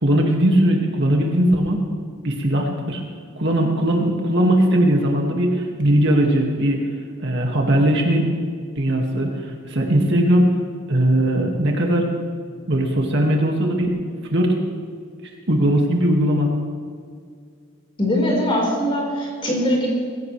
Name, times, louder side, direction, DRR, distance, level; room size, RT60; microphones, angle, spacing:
voice 1, 0.0-1.9 2.2-3.0 3.4-6.8 7.2-8.3 8.8-10.5 10.9-12.1 12.7-13.9 14.3-14.6 15.5-16.5, right 1 dB, 50° right, 0 dB, 2.1 m, -19 dB
voice 2, 18.0-19.9, equal, 25° left, -3 dB, 4.7 m, -21 dB
22.5 x 16.5 x 3.4 m, 2.1 s
head